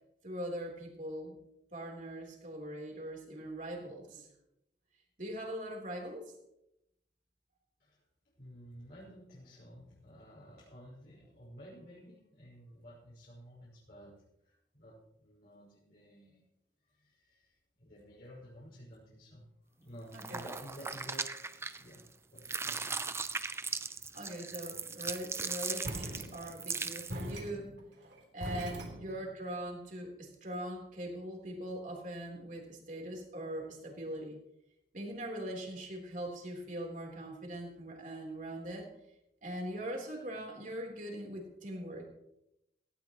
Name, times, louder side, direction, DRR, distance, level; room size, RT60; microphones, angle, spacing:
voice 1, 0.2-1.4 1.7-4.3 5.2-6.4 20.1-20.4 24.1-27.7 28.3-34.4 34.9-38.9 39.4-42.1, right 1 dB, 45° right, 1 dB, 3.7 m, -41 dB
voice 2, 8.3-16.4 16.9-19.4 19.8-21.3 21.8-22.1 22.3-23.2, equal, 60° left, -8 dB, 5.2 m, -53 dB
sound 1, 20.1-22.1 22.4-27.3, right 4 dB, 15° right, 0.5 m, -38 dB
sound 2, 25.8-26.7 27.1-29.5, equal, 85° right, 3.3 m, -42 dB
18.0 x 16.5 x 3.1 m, 0.84 s
head